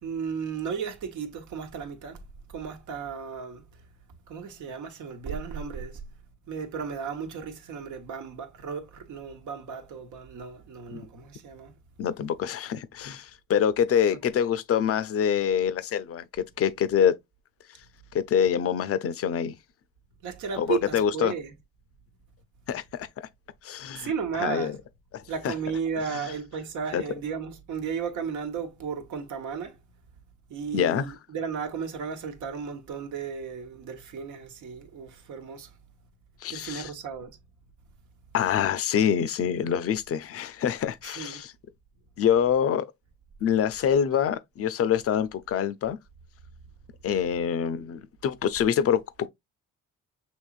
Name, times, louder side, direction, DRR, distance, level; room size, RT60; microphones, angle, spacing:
voice 1, 0.0-2.2 2.5-3.6 4.3-6.0 6.5-11.7 14.1-14.2 20.2-21.5 24.0-24.8 25.3-29.8 30.5-35.7 36.5-37.4 41.0-41.4, right 6 dB, 80° right, 1.1 m, -34 dB
voice 2, 12.0-17.2 18.1-19.6 20.6-21.3 22.7-23.1 23.6-24.1 24.4-24.8 25.1-25.5 26.1-26.2 26.9-27.0 30.7-31.1 36.4-36.9 38.3-41.5 42.2-42.9 43.4-46.0 47.0-49.0, left 8 dB, 50° left, 0.5 m, -25 dB
6.2 x 3.0 x 2.4 m
cardioid pair, 90°, 30 cm